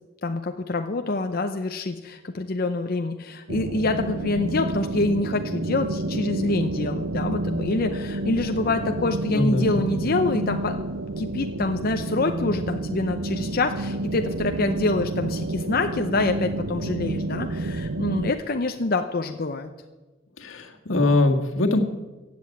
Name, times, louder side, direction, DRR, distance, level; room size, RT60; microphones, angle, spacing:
voice 1, 0.2-10.8 11.2-19.7, left 3 dB, 50° left, 6 dB, 0.7 m, -26 dB
sound 1, 3.5-18.3, right 2 dB, 75° right, 0.7 m, -29 dB
voice 2, 9.3-9.8 20.4-21.8, left 2 dB, 85° left, 3 dB, 1.8 m, -22 dB
15.5 x 7.9 x 8.5 m, 1.2 s
head